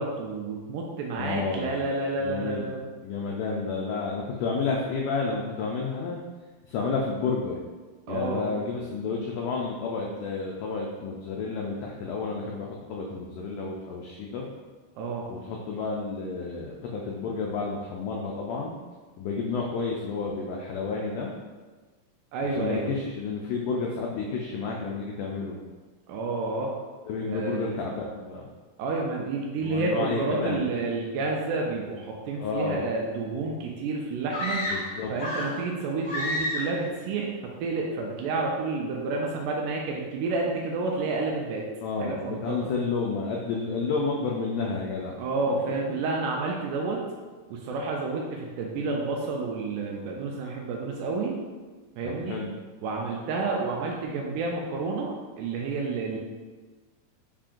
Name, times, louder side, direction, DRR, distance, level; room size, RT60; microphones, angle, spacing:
voice 1, 0.0-2.8 8.1-8.5 15.0-15.3 22.3-22.9 26.1-26.7 27.2-27.8 28.8-34.7 35.1-41.6 42.0-42.6 45.2-47.0 47.5-51.3 52.0-52.4 52.8-55.1 55.4-56.2, right 3 dB, 85° right, -1 dB, 1.8 m, -30 dB
voice 2, 1.2-1.8 2.2-2.7 3.0-6.2 6.6-7.6 8.1-14.5 15.3-18.7 19.2-21.3 22.4-25.6 27.1-28.5 29.6-30.7 32.3-32.8 34.6-35.1 41.8-45.2 52.0-52.5, left 4 dB, 90° left, -1 dB, 1.8 m, -31 dB
sound 1, 34.3-35.7 36.0-36.8, left 1 dB, 45° left, 1.7 m, -30 dB
5.6 x 2.5 x 3.6 m, 1.3 s
omnidirectional pair, 4.2 m